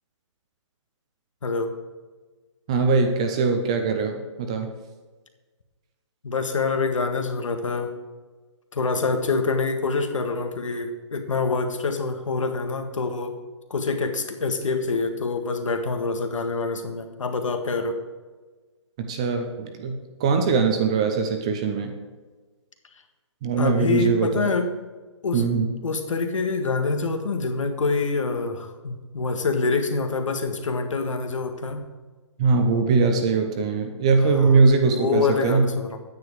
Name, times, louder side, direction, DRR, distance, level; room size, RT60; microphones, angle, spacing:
voice 1, 1.4-1.7 6.2-7.9 8.7-13.4 13.7-18.0 23.6-24.7 25.2-25.4 25.8-31.9 34.3-34.6 34.8-36.0, left 4 dB, 85° left, 6 dB, 1.8 m, -26 dB
voice 2, 2.7-4.7 19.0-21.9 23.4-24.5 25.3-25.7 32.4-35.8, right 4 dB, 10° right, 5 dB, 0.4 m, -21 dB
9.7 x 9.5 x 4.8 m, 1.3 s
hypercardioid pair, 175°, 16 cm